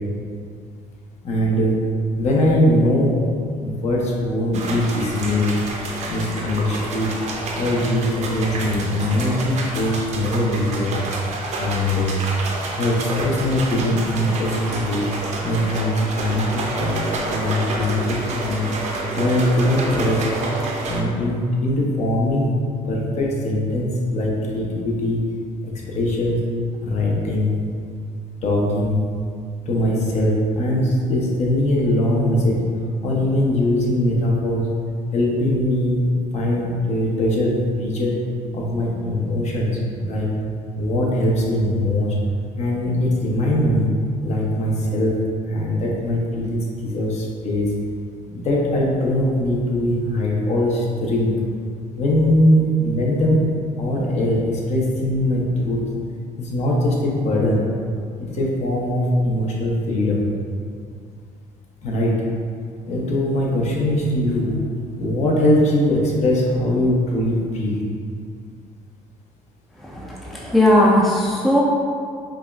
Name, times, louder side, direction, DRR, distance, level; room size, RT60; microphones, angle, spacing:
voice 1, 1.2-1.8 2.2-3.2 3.6-5.6 6.1-7.1 7.5-10.9 11.6-12.1 12.8-15.1 15.4-18.7 19.2-20.3 20.9-22.5 22.9-25.2 25.6-26.4 26.8-27.5 28.4-29.0 29.7-32.7 33.0-34.7 35.1-36.1 36.3-38.2 38.5-39.7 40.0-40.3 40.8-42.2 42.5-43.9 44.2-45.2 45.5-47.7 48.3-51.4 52.0-53.4 53.8-55.9 56.4-57.6 58.2-60.3 61.8-62.1 62.9-64.6 65.0-67.8, left 1 dB, 50° left, -3 dB, 0.8 m, -21 dB
sound 1, 4.5-21.0, right 2 dB, 50° right, 0.6 m, -29 dB
voice 2, 69.7-71.6, left 1 dB, ahead, -4 dB, 0.4 m, -18 dB
4.8 x 2.4 x 2.4 m, 2.2 s
cardioid pair, 110°, 15 cm